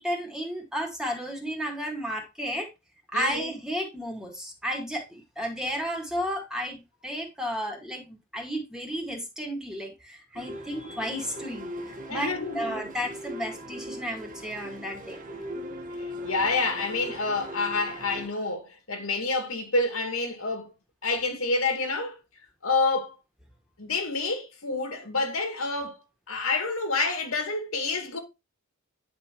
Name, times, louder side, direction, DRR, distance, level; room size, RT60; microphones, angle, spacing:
voice 1, 0.0-2.7 3.1-15.2, equal, 5° right, 2.0 m, -33 dB
voice 2, 3.1-3.5 12.1-12.8 16.2-20.7 21.0-22.2 22.6-23.1 23.8-26.0 26.3-28.2, left 3 dB, 80° left, 2.4 m, -28 dB
sound 1, 10.3-18.3, equal, 40° right, 1.4 m, -39 dB
9.9 x 5.5 x 3.0 m
head